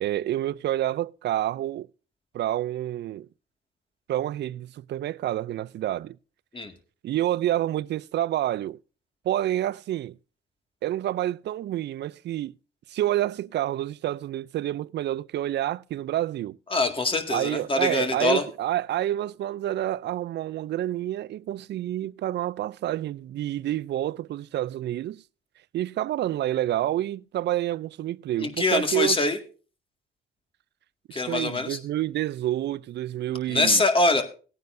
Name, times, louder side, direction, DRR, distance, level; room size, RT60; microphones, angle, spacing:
voice 1, 0.0-1.9 2.3-3.3 4.1-6.2 7.0-8.8 9.2-10.2 10.8-12.5 12.9-16.6 17.3-25.2 25.7-29.2 31.1-33.8, right 13 dB, 60° right, 0.4 m, -28 dB
voice 2, 16.7-18.4 28.4-29.4 31.1-31.8 33.5-34.2, left 2 dB, 25° left, 2.0 m, -24 dB
18.0 x 9.4 x 2.6 m
cardioid pair, 90°, 20 cm